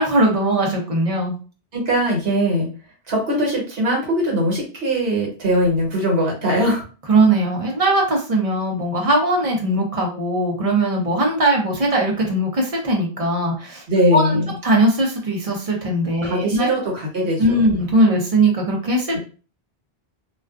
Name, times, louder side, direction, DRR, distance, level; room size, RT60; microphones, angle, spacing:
voice 1, 0.0-1.4 7.1-13.8 14.1-14.4 14.6-16.7 17.4-19.2, right 1 dB, 40° right, -1 dB, 0.7 m, -19 dB
voice 2, 1.7-2.7 3.1-6.8 13.9-14.5 16.2-17.8, equal, 70° right, -2 dB, 1.2 m, -21 dB
2.3 x 2.3 x 2.3 m, 0.36 s
omnidirectional pair, 1.0 m